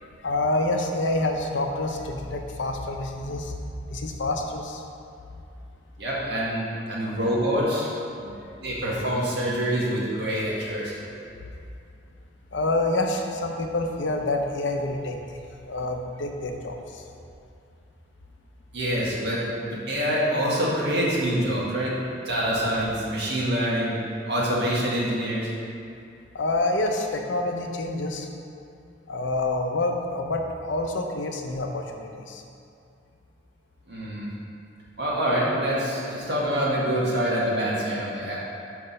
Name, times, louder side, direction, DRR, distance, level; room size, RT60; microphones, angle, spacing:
voice 1, 0.0-3.5 3.9-4.8 8.4-8.5 12.5-15.2 15.7-17.0 26.3-28.3 29.1-32.4, left 2 dB, 85° left, 3 dB, 0.7 m, -27 dB
voice 2, 6.0-7.9 8.2-11.0 18.7-22.0 22.3-23.9 24.3-25.5 33.9-34.3 35.0-38.4, equal, 60° right, -6 dB, 1.8 m, -26 dB
5.9 x 5.4 x 5.4 m, 2.5 s
head